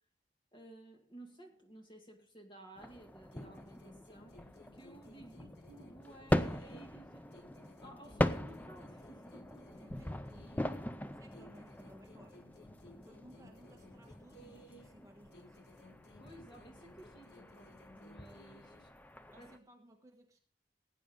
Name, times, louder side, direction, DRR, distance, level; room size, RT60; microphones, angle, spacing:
voice 1, 0.5-4.4 4.7-7.4 7.8-9.7 16.2-18.9 19.4-19.5, right 1 dB, 25° left, 3 dB, 2.1 m, -56 dB
sound 1, 2.8-19.6, left 1 dB, 10° left, 0.5 m, -41 dB
sound 2, 3.3-7.0 7.3-10.9 11.3-15.0 15.3-18.9, left 1 dB, 70° left, 1.3 m, -59 dB
voice 2, 9.8-15.6 19.3-20.5, right 1 dB, 20° right, 2 dB, 1.4 m, -61 dB
18.0 x 9.0 x 3.7 m, 0.44 s
head